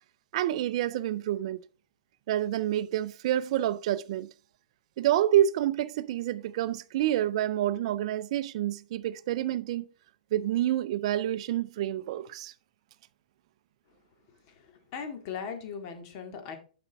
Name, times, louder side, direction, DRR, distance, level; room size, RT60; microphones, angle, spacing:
voice 1, 0.3-1.6 2.3-4.3 5.0-9.9 10.3-12.5, right 12 dB, 45° right, 0.5 m, -28 dB
voice 2, 14.5-16.6, left 6 dB, 35° left, 2.0 m, -39 dB
10.5 x 5.2 x 3.4 m
hypercardioid pair, 150°, 4 cm